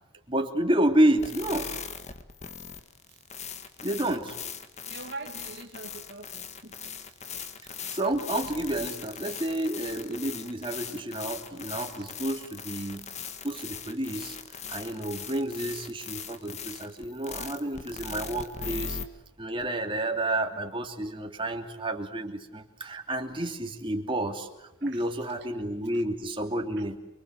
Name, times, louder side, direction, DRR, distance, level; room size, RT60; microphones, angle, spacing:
voice 1, 0.3-1.7 3.8-4.4 7.9-13.0 13.4-14.4 14.7-19.0 19.4-27.0, right 1 dB, 25° right, 3 dB, 2.8 m, -30 dB
sound 1, 1.2-19.0, left 6 dB, 35° left, 1.8 m, -40 dB
voice 2, 4.9-6.8 7.3-7.4 11.9-12.0 24.9-25.0, right 3 dB, 55° right, 4 dB, 2.0 m, -43 dB
29.5 x 23.5 x 8.0 m, 0.91 s
head